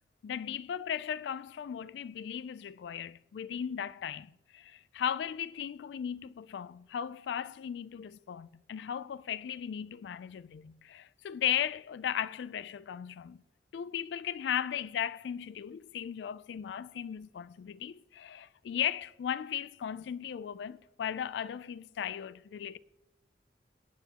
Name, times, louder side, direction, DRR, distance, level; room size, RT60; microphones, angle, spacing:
voice 1, 0.2-13.4 13.7-22.8, left 9 dB, 75° left, 0.3 m, -36 dB
23.0 x 9.3 x 2.9 m
head